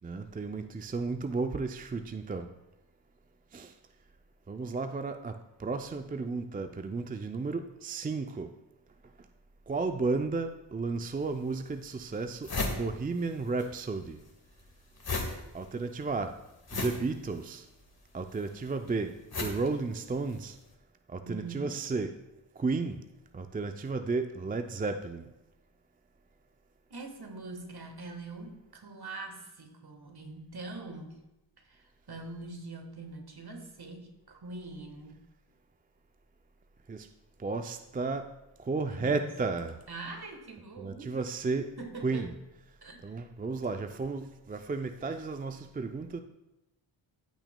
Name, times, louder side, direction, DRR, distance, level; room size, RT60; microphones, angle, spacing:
voice 1, 0.0-2.5 3.5-3.7 4.5-8.5 9.7-14.2 15.5-16.3 16.7-17.7 18.1-20.6 21.1-22.1 22.6-23.0 23.3-25.3 36.9-37.1 37.4-38.3 38.6-39.8 40.8-41.7 42.0-42.3 43.0-46.2, right 3 dB, 20° right, 7 dB, 0.4 m, -33 dB
sound 1, 11.2-11.3 11.8-11.9 12.1-13.7 13.9-20.5, left 3 dB, 45° left, 1.6 m, -37 dB
voice 2, 21.2-21.8 26.9-31.2 31.6-35.2 38.9-39.3 39.9-41.2 41.8-42.3 42.8-43.1, right 3 dB, 50° right, 4 dB, 1.4 m, -43 dB
14.0 x 6.0 x 2.2 m, 0.96 s
cardioid pair, 50°, 50 cm